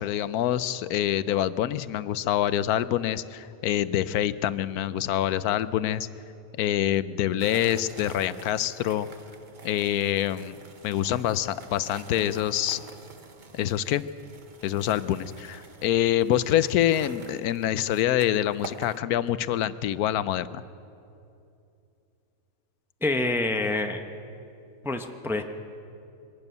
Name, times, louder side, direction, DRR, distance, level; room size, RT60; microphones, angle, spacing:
voice 1, 0.0-6.1 6.6-9.1 9.6-10.6 10.8-12.8 13.5-14.0 14.6-20.6, left 11 dB, 85° left, 15 dB, 1.1 m, -26 dB
sound 1, 7.4-19.0, right 4 dB, 35° right, 1.0 m, -47 dB
voice 2, 23.0-24.0 24.8-25.4, left 2 dB, ahead, 5 dB, 0.7 m, -27 dB
23.0 x 12.5 x 9.2 m, 2.7 s
omnidirectional pair, 1.5 m